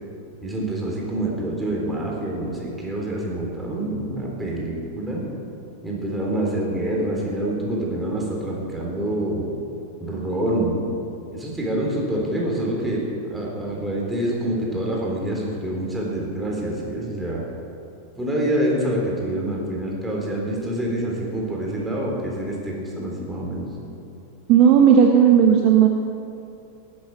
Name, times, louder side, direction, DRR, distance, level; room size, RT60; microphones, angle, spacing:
voice 1, 0.4-5.2 5.8-9.5 10.0-10.8 11.3-13.0 13.3-17.4 18.2-23.7, right 1 dB, 5° right, -3 dB, 3.8 m, -26 dB
voice 2, 24.5-25.9, right 8 dB, 40° right, 2 dB, 1.0 m, -14 dB
19.0 x 8.7 x 6.0 m, 2.6 s
figure-of-eight pair, 90°, 0 cm